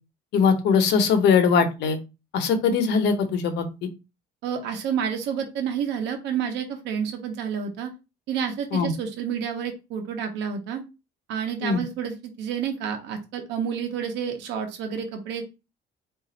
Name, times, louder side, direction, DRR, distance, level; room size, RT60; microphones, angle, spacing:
voice 1, 0.3-2.0 2.3-3.6 8.7-8.9 11.6-11.8, left 5 dB, 80° left, 7 dB, 0.9 m, -21 dB
voice 2, 4.4-7.9 8.3-10.8 11.3-15.4, right 7 dB, 90° right, 5 dB, 0.8 m, -29 dB
4.1 x 2.6 x 3.8 m, 0.27 s
cardioid pair, 160°, 18 cm